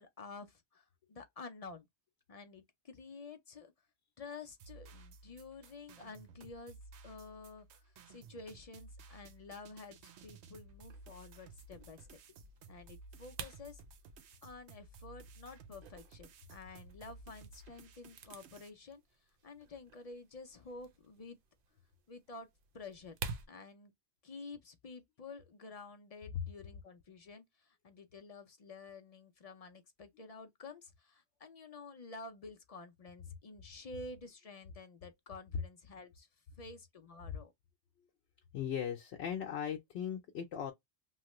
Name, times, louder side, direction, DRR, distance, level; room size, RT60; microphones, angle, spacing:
voice 1, 0.0-1.9 2.3-3.7 4.2-6.8 7.0-12.4 12.7-13.8 14.4-21.4 22.1-23.2 23.5-23.9 24.2-36.3 36.6-37.5, left 3 dB, 50° left, 0.4 m, -51 dB
sound 1, 4.5-18.7, right 3 dB, 85° right, 0.9 m, -56 dB
Cracking Sticks One, 10.9-23.5, right 5 dB, 60° right, 0.7 m, -51 dB
voice 2, 38.5-40.7, left 8 dB, 75° left, 0.9 m, -38 dB
3.1 x 2.0 x 2.9 m
omnidirectional pair, 1.1 m